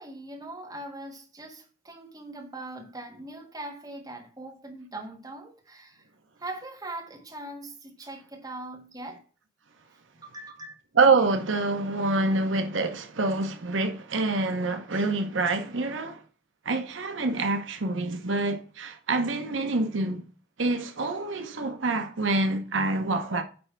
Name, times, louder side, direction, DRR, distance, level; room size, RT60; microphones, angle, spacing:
voice 1, 0.0-6.0 6.4-9.2 10.2-10.7, right 2 dB, 20° right, 1.6 m, -41 dB
voice 2, 11.0-16.2 16.6-20.2 20.6-23.4, right 3 dB, 80° right, 1.0 m, -26 dB
9.7 x 3.3 x 5.8 m
head